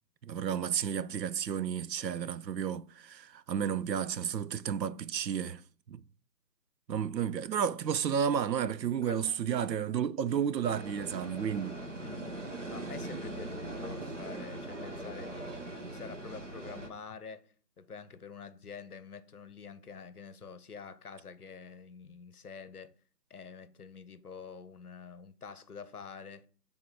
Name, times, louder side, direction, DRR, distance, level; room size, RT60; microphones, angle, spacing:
voice 1, 0.2-5.6 5.9-6.0 6.9-11.8, right 8 dB, 80° right, 0.6 m, -32 dB
voice 2, 9.0-9.4 12.0-12.2 12.7-22.9 23.3-26.5, left 6 dB, 60° left, 0.7 m, -47 dB
sound 1, 10.6-16.9, right 2 dB, 45° right, 0.9 m, -41 dB
6.2 x 3.7 x 4.4 m
figure-of-eight pair, 175°, 50 cm